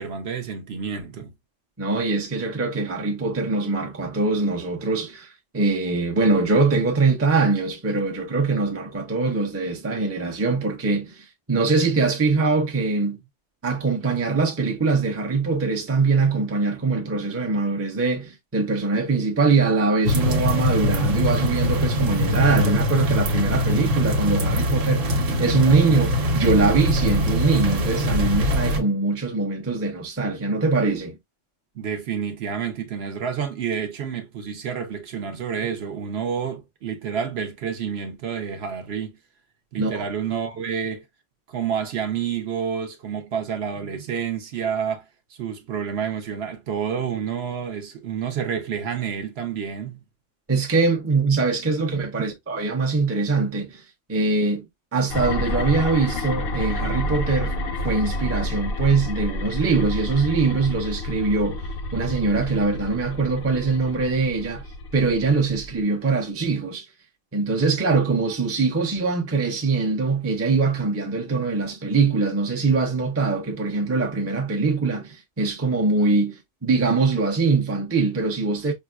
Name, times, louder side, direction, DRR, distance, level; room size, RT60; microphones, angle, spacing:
voice 1, 0.0-1.3 31.7-39.2 39.7-41.0 41.5-50.0 52.2-52.3, right 7 dB, 60° right, 0.8 m, -29 dB
voice 2, 1.8-5.3 5.5-13.2 13.6-31.2 39.8-40.0 50.5-53.8 54.1-54.7 54.9-57.6 57.8-61.6 61.9-64.6 64.9-66.9 67.3-78.7, right 3 dB, 15° right, 0.5 m, -22 dB
sound 1, 20.0-28.8, left 1 dB, 90° right, 1.2 m, -22 dB
sound 2, 55.1-65.8, left 1 dB, 60° left, 0.7 m, -29 dB
5.2 x 2.1 x 2.2 m
omnidirectional pair, 1.3 m